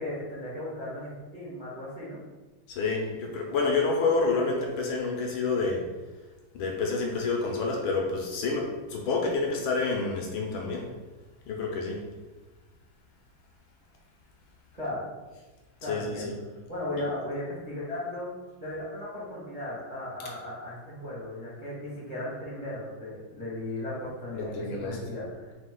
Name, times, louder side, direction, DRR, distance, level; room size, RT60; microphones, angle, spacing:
voice 1, 0.0-2.2 14.7-15.1 15.8-16.3 16.7-18.3 18.6-25.5, left 1 dB, 30° right, -8 dB, 0.7 m, -36 dB
voice 2, 2.7-5.9 6.5-10.9 11.5-12.0 15.9-16.3 24.3-25.0, left 3 dB, 75° left, 0 dB, 1.4 m, -28 dB
4.0 x 2.8 x 3.8 m, 1.2 s
omnidirectional pair, 2.4 m